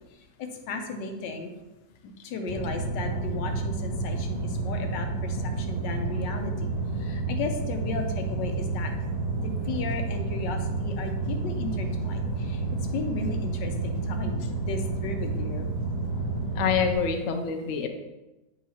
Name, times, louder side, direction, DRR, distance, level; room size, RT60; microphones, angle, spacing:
voice 1, 0.0-1.5 2.2-6.7 7.0-8.9 9.4-12.6 12.9-15.7, left 3 dB, 90° left, 5 dB, 1.4 m, -35 dB
sound 1, 2.5-16.9, right 3 dB, 15° left, 1.0 m, -30 dB
voice 2, 16.5-17.9, left 7 dB, 60° left, 5 dB, 0.9 m, -26 dB
8.3 x 4.8 x 2.9 m, 1.1 s
omnidirectional pair, 1.9 m